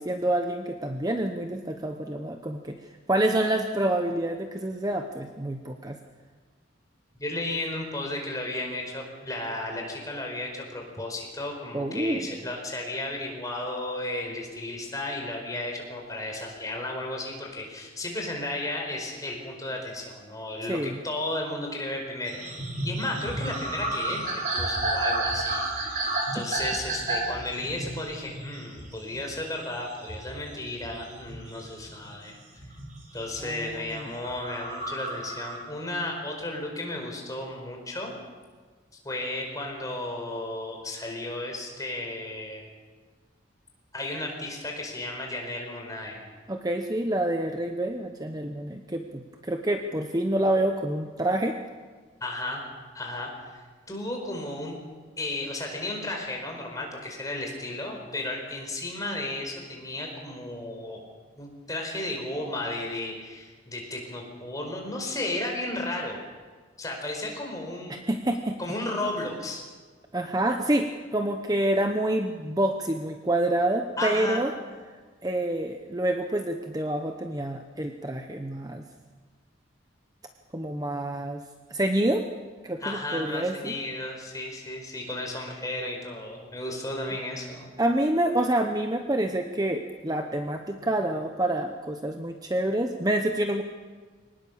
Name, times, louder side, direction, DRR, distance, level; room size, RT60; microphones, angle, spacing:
voice 1, 0.0-2.8 3.1-6.0 11.7-12.3 20.7-21.0 26.4-26.5 33.4-34.0 46.5-51.6 67.9-68.6 70.1-74.5 75.2-78.8 80.5-81.4 81.7-82.3 82.6-83.7 87.8-93.6, right 1 dB, 20° right, 5 dB, 0.9 m, -27 dB
voice 2, 7.2-22.4 22.8-32.4 33.1-38.1 39.0-42.6 43.9-46.2 52.2-52.6 52.9-53.6 53.9-54.7 55.2-61.0 61.4-66.2 66.8-68.0 68.6-69.6 74.0-74.4 82.8-87.7, left 2 dB, 20° left, 1 dB, 4.8 m, -34 dB
sound 1, 22.3-32.2 32.6-33.6 34.1-35.6, right 2 dB, 40° right, 4.4 m, -31 dB
23.5 x 19.0 x 7.1 m, 1.5 s
head